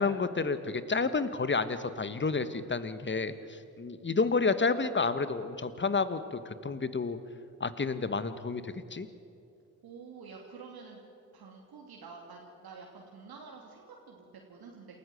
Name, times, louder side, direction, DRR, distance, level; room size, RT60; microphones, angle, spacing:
voice 1, 0.0-7.2 7.6-9.1, left 4 dB, 25° left, 13 dB, 1.5 m, -30 dB
voice 2, 9.8-11.0 11.3-15.0, right 5 dB, 55° right, 0 dB, 2.9 m, -49 dB
27.5 x 14.0 x 7.9 m, 2.5 s
hypercardioid pair, 45°, 45 cm